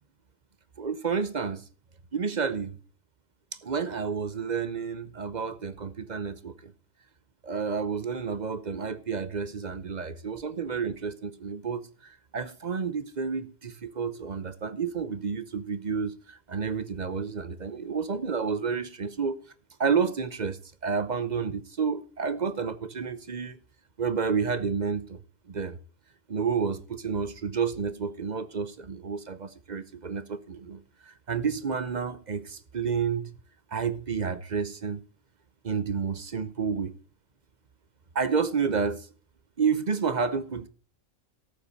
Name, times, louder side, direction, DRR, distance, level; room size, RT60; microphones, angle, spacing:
voice 1, 0.8-1.6 2.1-2.8 3.6-6.7 7.4-19.4 19.8-23.6 24.0-25.2 25.5-25.8 26.3-33.3 33.7-35.0 35.6-36.9 38.1-39.1 39.6-40.7, right 6 dB, 40° right, 0.7 m, -30 dB
13.5 x 8.5 x 4.0 m
omnidirectional pair, 1.4 m